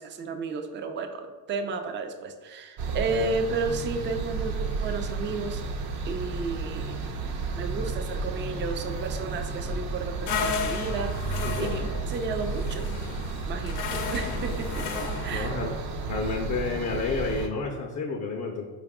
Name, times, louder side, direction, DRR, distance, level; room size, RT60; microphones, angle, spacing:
voice 1, 0.0-5.6 6.1-7.0 7.6-11.8 12.1-12.9 13.5-15.5, right 4 dB, 25° right, 6 dB, 0.4 m, -33 dB
sound 1, 2.8-17.5, right 4 dB, 55° right, 0.7 m, -32 dB
sound 2, 10.3-15.4, left 6 dB, 70° left, 0.7 m, -34 dB
voice 2, 11.4-11.9 15.3-15.8 16.0-18.7, left 4 dB, 35° left, 2 dB, 0.5 m, -30 dB
4.5 x 2.4 x 3.5 m, 1.3 s
hypercardioid pair, 60°, 49 cm